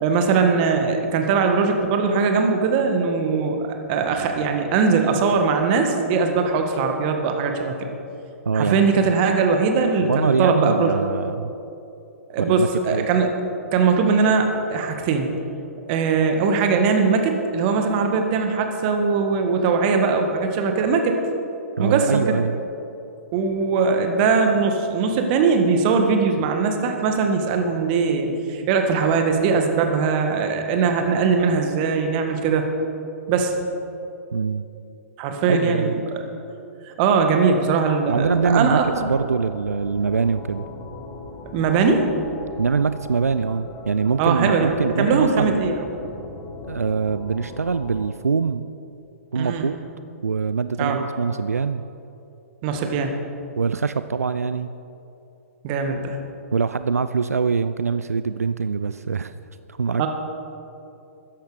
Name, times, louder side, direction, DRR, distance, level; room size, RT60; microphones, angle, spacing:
voice 1, 0.0-7.9 8.5-10.9 12.3-13.3 13.7-15.4 15.9-21.2 21.8-22.4 23.3-32.7 33.3-33.5 35.2-36.0 36.8-39.1 41.5-42.0 44.2-44.7 45.0-45.9 49.3-49.7 50.8-51.0 52.6-53.2 55.6-56.2 60.0-60.1, right 5 dB, 40° right, 4 dB, 1.6 m, -20 dB
voice 2, 8.5-8.9 10.1-11.5 12.5-13.1 21.8-22.6 34.3-34.7 35.5-35.9 38.1-38.8 39.1-40.6 42.6-45.6 46.7-48.7 49.3-49.8 50.2-51.8 53.6-54.7 56.5-59.3 59.8-60.1, right 5 dB, 90° right, 12 dB, 0.4 m, -23 dB
sound 1, 38.1-48.1, left 3 dB, 20° left, 1.2 m, -39 dB
13.5 x 10.0 x 5.0 m, 2.9 s
hypercardioid pair, 120°, 8 cm